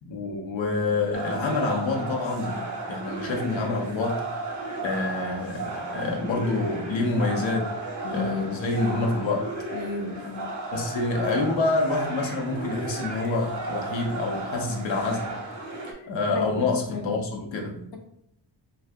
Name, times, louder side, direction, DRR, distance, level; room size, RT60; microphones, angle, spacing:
voice 1, 0.0-2.6 2.9-4.2 4.8-7.7 8.0-9.5 10.7-15.4 16.1-17.8, left 3 dB, 90° left, 1 dB, 0.8 m, -27 dB
sound 1, 1.1-15.9, right 2 dB, 40° right, 0.7 m, -34 dB
voice 2, 8.0-8.5 9.7-10.5 15.9-16.0 16.3-17.1, left 4 dB, 55° left, 2 dB, 0.6 m, -33 dB
2.7 x 2.3 x 3.4 m, 0.76 s
wide cardioid pair, 105°, 45 cm